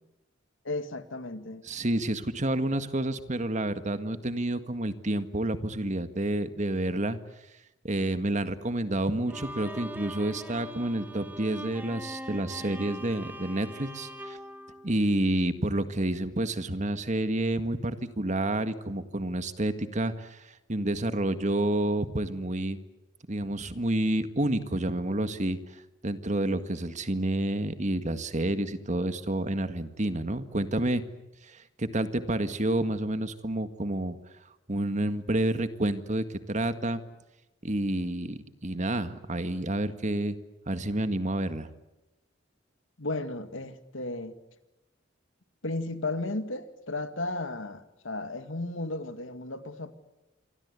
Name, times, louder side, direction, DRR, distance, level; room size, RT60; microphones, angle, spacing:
voice 1, 0.6-1.6 43.0-44.3 45.6-49.9, left 2 dB, 85° left, 2.3 m, -34 dB
voice 2, 1.6-7.2 7.8-14.4 14.8-22.8 23.3-31.0 31.4-34.2 34.7-37.0 37.6-40.4 40.7-41.7, right 1 dB, 40° right, 1.8 m, -29 dB
Bowed string instrument, 9.3-15.6, equal, 10° right, 2.1 m, -42 dB
27.5 x 24.0 x 8.4 m
head